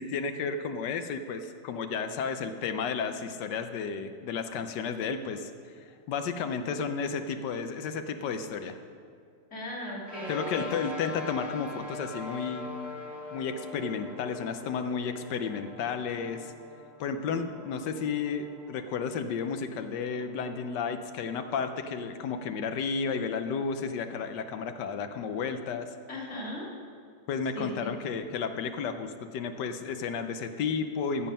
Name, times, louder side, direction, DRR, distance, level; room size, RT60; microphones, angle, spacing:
voice 1, 0.0-5.5 5.8-8.8 10.3-12.7 13.3-16.5 17.0-25.9 27.3-31.3, left 5 dB, 75° left, 8 dB, 1.3 m, -32 dB
voice 2, 9.5-10.7 26.1-26.6 27.5-27.9, left 1 dB, 40° left, -3 dB, 2.6 m, -37 dB
sound 1, 10.0-22.8, left 2 dB, ahead, 1.6 m, -43 dB
14.5 x 7.4 x 5.5 m, 2.3 s
omnidirectional pair, 2.0 m